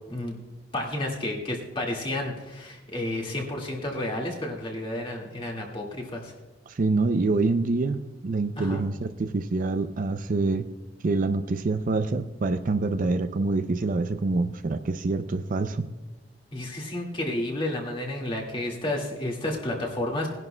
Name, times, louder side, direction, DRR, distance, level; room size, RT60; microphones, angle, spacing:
voice 1, 0.7-6.3 8.6-8.8 16.5-20.3, left 1 dB, 30° left, -1 dB, 1.9 m, -31 dB
voice 2, 6.7-10.7 11.0-15.9, right 3 dB, 45° right, 9 dB, 0.4 m, -26 dB
19.0 x 10.5 x 2.2 m, 1.1 s
head